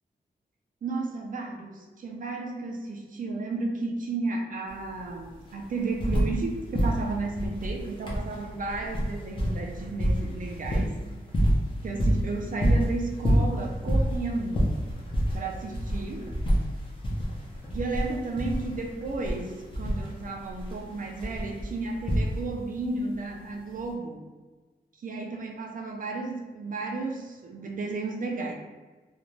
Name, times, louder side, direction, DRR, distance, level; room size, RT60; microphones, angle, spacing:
voice 1, 0.8-11.0 11.8-14.7 15.3-16.3 17.7-24.2 25.0-28.5, right 3 dB, 55° right, 2 dB, 0.4 m, -33 dB
sound 1, 4.7-4.8 5.0-6.5 6.7-22.7 23.8-23.9, equal, 30° left, 0.5 m, -27 dB
2.5 x 2.1 x 3.0 m, 1.3 s
wide cardioid pair, 175°, 16 cm